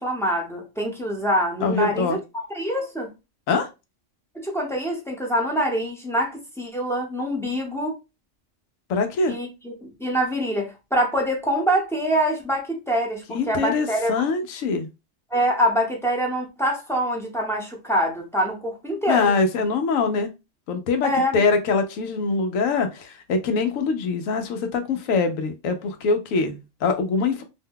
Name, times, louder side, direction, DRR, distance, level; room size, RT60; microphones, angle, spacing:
voice 1, 0.0-2.2 2.5-3.1 4.3-8.0 9.3-14.1 15.3-19.3 21.0-21.4, equal, 5° left, 0.6 m, -25 dB
voice 2, 1.6-2.2 3.5-3.7 8.9-9.3 13.3-14.9 19.1-20.3 20.7-27.4, left 4 dB, 85° left, 1.0 m, -23 dB
2.7 x 2.2 x 3.5 m
omnidirectional pair, 1.3 m